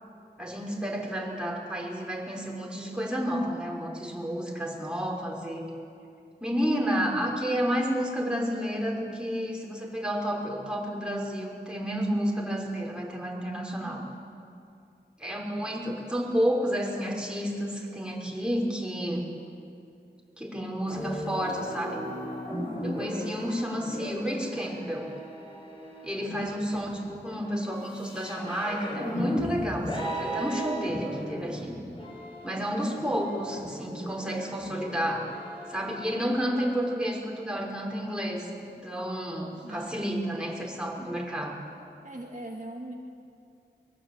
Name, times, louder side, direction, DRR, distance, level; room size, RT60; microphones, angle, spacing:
voice 1, 0.4-5.7 6.4-14.0 15.2-19.3 20.4-22.0 22.8-25.1 26.0-31.7 32.4-35.2 35.7-41.6, equal, 5° right, -2 dB, 5.4 m, -31 dB
sound 1, 20.9-36.8, equal, 30° left, 7.2 m, -37 dB
voice 2, 39.6-40.1 40.7-41.0 42.0-42.9, right 1 dB, 45° right, 0 dB, 1.9 m, -40 dB
23.5 x 20.5 x 8.7 m, 2.5 s
wide cardioid pair, 50°, 18 cm